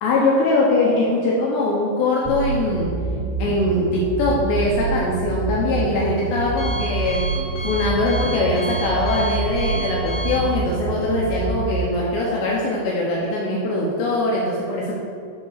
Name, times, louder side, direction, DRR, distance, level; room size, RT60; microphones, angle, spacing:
voice 1, 0.0-3.0 3.4-7.3 7.6-14.9, left 2 dB, 70° left, -4 dB, 3.1 m, -21 dB
sound 1, 2.3-11.9, right 4 dB, 80° right, 2.5 m, -27 dB
Alarm, 5.2-11.6, right 1 dB, 45° left, 2.6 m, -33 dB
10.5 x 4.8 x 6.5 m, 2.3 s
omnidirectional pair, 5.5 m